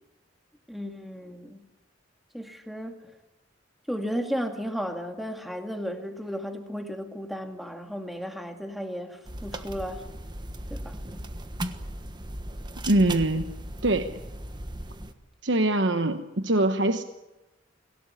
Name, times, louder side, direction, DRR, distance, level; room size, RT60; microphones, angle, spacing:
voice 1, 0.7-1.6 2.3-3.0 3.9-10.0 10.7-10.9, equal, ahead, 5 dB, 2.1 m, -34 dB
sound 1, 9.2-15.1, right 1 dB, 25° right, 1.4 m, -37 dB
voice 2, 12.9-13.5 13.8-14.2 15.4-17.0, right 2 dB, 70° right, 8 dB, 1.1 m, -23 dB
25.5 x 17.0 x 9.9 m, 1.0 s
head